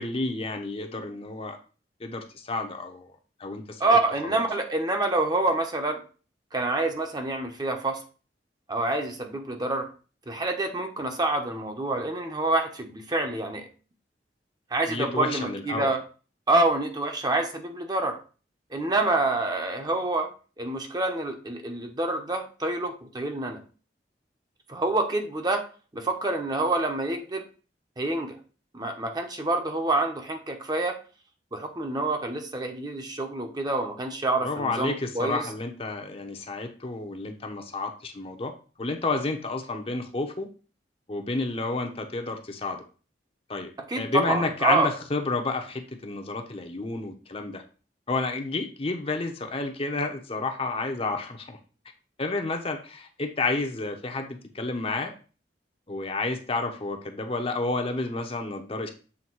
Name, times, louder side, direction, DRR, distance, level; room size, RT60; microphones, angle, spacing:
voice 1, 0.0-1.6 2.0-3.1 3.4-4.0 4.2-4.4 14.9-15.9 34.4-38.5 38.8-40.5 41.1-42.8 43.5-47.6 48.1-51.6 52.2-55.1 55.9-58.9, left 3 dB, 35° left, 4 dB, 0.9 m, -30 dB
voice 2, 3.8-6.0 6.5-8.0 8.7-9.9 10.3-13.7 14.7-16.0 16.5-18.2 18.7-20.3 20.6-23.6 24.7-25.6 25.9-27.4 28.0-28.4 28.7-31.0 31.5-35.4 43.9-44.9, right 2 dB, 25° right, 4 dB, 0.9 m, -27 dB
7.3 x 3.4 x 4.7 m, 0.37 s
head